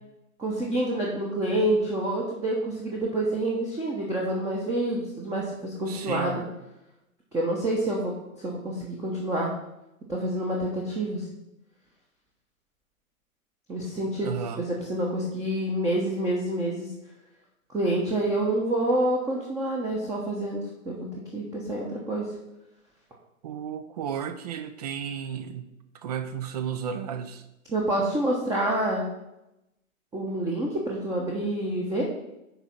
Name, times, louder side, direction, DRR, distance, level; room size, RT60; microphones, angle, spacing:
voice 1, 0.4-6.4 7.3-9.5 10.1-11.2 13.7-14.3 14.6-16.9 17.7-22.3 27.7-29.0 30.1-32.0, right 1 dB, 10° right, -3 dB, 0.9 m, -27 dB
voice 2, 5.9-6.4 14.2-14.7 23.4-25.7 25.9-27.5, right 8 dB, 30° right, 11 dB, 0.6 m, -33 dB
9.8 x 3.6 x 5.6 m, 0.90 s
figure-of-eight pair, 125°, 42 cm